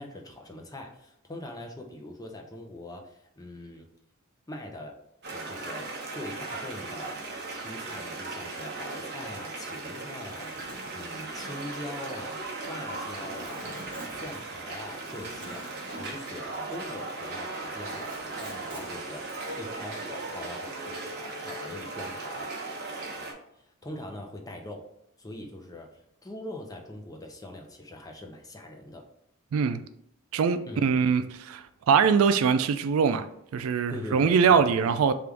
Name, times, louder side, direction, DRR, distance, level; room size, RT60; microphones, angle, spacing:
voice 1, 0.0-3.9 4.5-5.0 5.3-7.2 7.5-10.6 10.9-13.7 14.1-18.1 18.4-19.3 19.6-22.5 23.8-24.9 25.2-25.9 26.2-29.0 30.7-30.9 33.9-35.2, left 1 dB, 15° left, 2 dB, 0.6 m, -42 dB
sound 1, 5.2-23.3, right 3 dB, 50° right, 0.9 m, -37 dB
Zipper (clothing), 10.1-17.2 17.5-19.7, equal, 25° right, 1.0 m, -46 dB
voice 2, 30.3-33.3 33.5-35.2, right 6 dB, 70° right, 10 dB, 0.3 m, -23 dB
3.5 x 2.5 x 4.5 m, 0.77 s
head